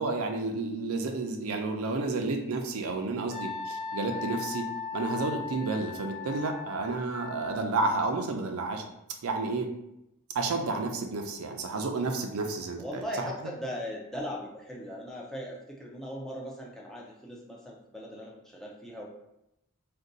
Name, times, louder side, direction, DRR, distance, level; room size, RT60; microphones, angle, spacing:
voice 1, 0.0-4.6 4.9-8.9 9.2-9.7 10.3-13.0, right 3 dB, 90° right, 4 dB, 0.5 m, -31 dB
Wind instrument woodwind instrument, 3.3-7.5, left 5 dB, 25° left, 0.9 m, -38 dB
voice 2, 12.8-19.1, equal, ahead, -3 dB, 0.4 m, -39 dB
2.5 x 2.2 x 3.8 m, 0.86 s
head